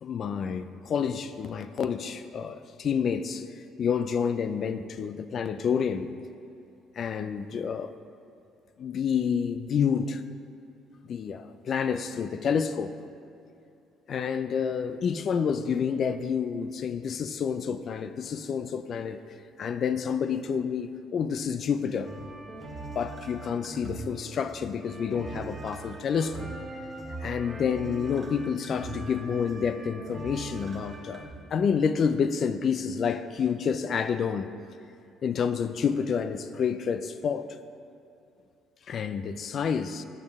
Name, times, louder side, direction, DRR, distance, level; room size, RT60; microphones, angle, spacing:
voice 1, 0.0-3.4 3.8-6.1 7.0-7.9 8.8-10.2 11.1-12.9 14.1-19.2 19.6-22.1 22.9-26.5 27.2-34.5 35.2-37.5 38.9-40.0, left 7 dB, 50° left, 10 dB, 0.3 m, -29 dB
sound 1, 22.0-31.3, right 2 dB, 25° right, 1.2 m, -41 dB
7.8 x 7.2 x 3.5 m, 2.6 s
cardioid pair, 105°, 0 cm